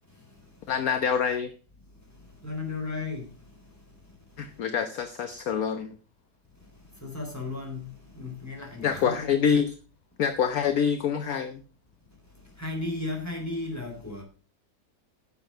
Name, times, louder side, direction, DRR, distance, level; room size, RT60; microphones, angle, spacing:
voice 1, 0.7-1.5 4.4-5.9 8.8-9.8 10.2-11.6, left 7 dB, 60° left, 1.2 m, -26 dB
voice 2, 2.4-3.3 7.0-7.9 8.2-9.3 12.6-14.2, left 3 dB, 10° left, 3.8 m, -34 dB
9.8 x 7.0 x 6.3 m
omnidirectional pair, 1.9 m